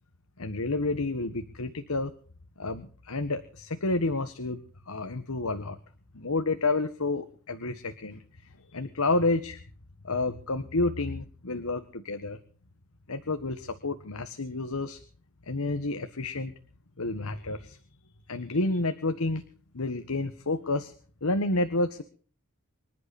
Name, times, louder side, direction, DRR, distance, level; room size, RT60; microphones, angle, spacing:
voice 1, 0.4-2.1 2.6-5.8 6.1-9.6 10.0-12.4 13.1-15.0 15.4-16.5 17.0-17.8 18.3-19.4 19.7-20.9 21.2-22.0, left 2 dB, 85° left, 9 dB, 1.4 m, -30 dB
25.5 x 11.0 x 4.2 m, 0.43 s
head